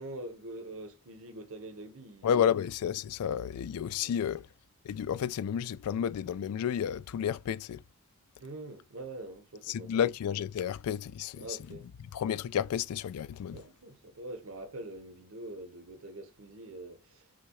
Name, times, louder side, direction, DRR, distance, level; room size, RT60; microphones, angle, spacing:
voice 1, 0.0-2.5 4.0-4.4 8.4-10.0 11.4-11.9 13.5-17.3, right 2 dB, 65° right, 1.0 m, -44 dB
voice 2, 2.2-4.5 4.8-7.8 9.7-11.5 12.1-13.6, left 8 dB, 80° left, 0.3 m, -31 dB
5.9 x 2.3 x 2.9 m
head